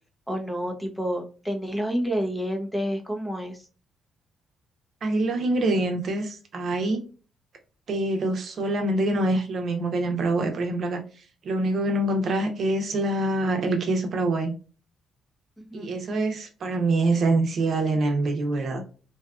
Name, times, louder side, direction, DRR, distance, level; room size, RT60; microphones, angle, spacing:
voice 1, 0.3-3.7 15.6-15.9, equal, 5° left, 3 dB, 0.6 m, -29 dB
voice 2, 5.0-7.0 7.9-11.0 11.4-14.5 15.7-18.8, right 2 dB, 55° right, 4 dB, 0.7 m, -25 dB
2.7 x 2.3 x 2.3 m, 0.36 s
cardioid pair, 90°, 0 cm